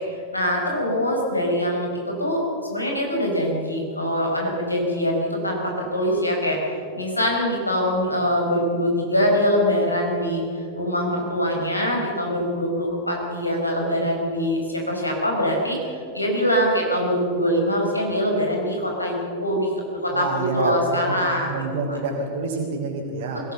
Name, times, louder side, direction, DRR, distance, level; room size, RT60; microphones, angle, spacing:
voice 1, 0.1-2.4 2.7-6.6 6.9-10.4 10.7-15.9 16.1-21.6 21.9-22.0 23.3-23.5, equal, 85° left, 0 dB, 4.9 m, -23 dB
voice 2, 20.1-21.2 21.4-23.5, right 4 dB, 55° right, -4 dB, 3.3 m, -28 dB
22.5 x 17.0 x 6.8 m, 2.5 s
figure-of-eight pair, 90°, 0 cm